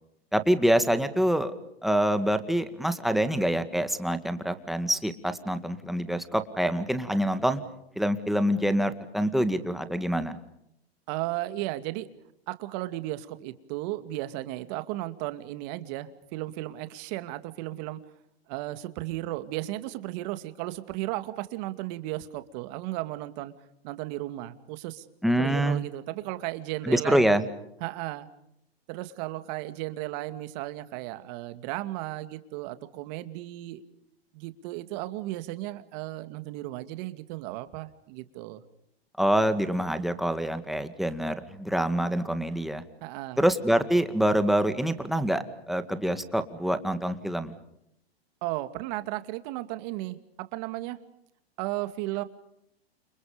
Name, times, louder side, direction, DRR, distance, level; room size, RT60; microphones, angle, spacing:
voice 1, 0.3-1.5 1.8-7.6 8.0-10.4 25.2-25.8 26.8-27.4 39.2-42.8 43.4-47.5, equal, ahead, 9 dB, 1.9 m, -26 dB
voice 2, 11.1-12.1 12.5-18.0 18.5-23.5 23.8-27.3 27.8-28.3 28.9-33.8 34.3-38.6 43.0-43.4 48.4-51.0 51.6-52.2, right 16 dB, 40° right, 10 dB, 2.4 m, -35 dB
30.0 x 28.5 x 5.2 m, 0.78 s
hypercardioid pair, 135°, 32 cm